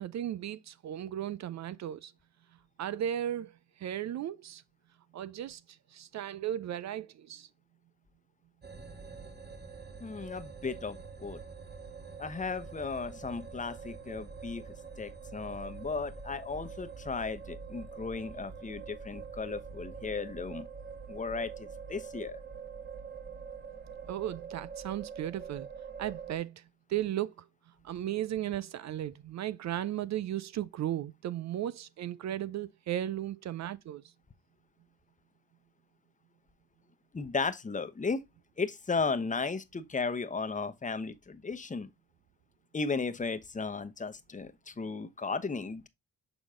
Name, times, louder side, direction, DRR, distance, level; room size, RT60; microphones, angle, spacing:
voice 1, 0.0-2.1 2.8-4.6 5.1-7.5 24.1-25.7 26.0-26.6 26.9-27.5 27.8-34.1, right 11 dB, 60° right, 0.5 m, -36 dB
sound 1, 8.6-26.4, right 5 dB, 30° right, 1.5 m, -45 dB
voice 2, 10.0-11.4 12.2-20.7 21.1-22.4 37.1-38.2 38.6-41.9 42.7-45.9, left 4 dB, 25° left, 0.9 m, -35 dB
6.7 x 4.0 x 3.7 m
supercardioid pair, 65°, 32 cm